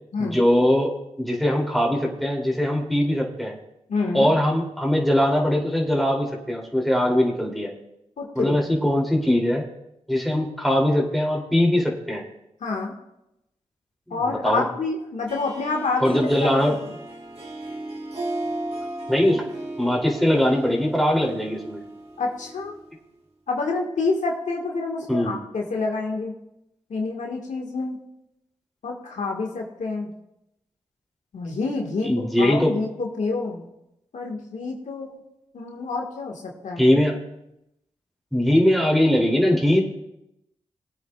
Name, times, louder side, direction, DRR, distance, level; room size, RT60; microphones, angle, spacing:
voice 1, 0.2-3.6 4.1-7.7 8.3-9.6 10.1-12.2 14.1-14.6 16.0-16.8 19.1-19.4 19.8-21.8 25.1-25.4 32.0-32.8 36.8-37.2 38.3-39.8, left 1 dB, ahead, -2 dB, 2.9 m, -21 dB
voice 2, 3.9-4.3 8.2-8.6 12.6-12.9 14.1-16.7 22.2-22.7 23.5-26.3 26.9-28.0 28.8-30.1 31.3-33.6 34.1-35.2 35.5-36.8, left 3 dB, 80° left, 0 dB, 1.7 m, -28 dB
Harp, 15.2-23.0, right 1 dB, 50° right, 2.1 m, -35 dB
21.5 x 8.9 x 2.4 m, 0.86 s
cardioid pair, 50°, 12 cm